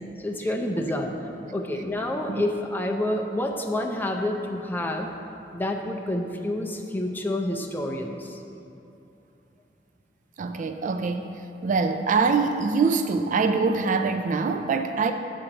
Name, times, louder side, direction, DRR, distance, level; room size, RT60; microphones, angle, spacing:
voice 1, 0.2-1.1 1.5-5.1 5.5-8.4, left 1 dB, 10° left, 1 dB, 0.5 m, -28 dB
voice 2, 10.4-11.3 11.6-15.1, right 4 dB, 45° right, 7 dB, 0.3 m, -24 dB
7.8 x 4.4 x 6.2 m, 2.8 s
head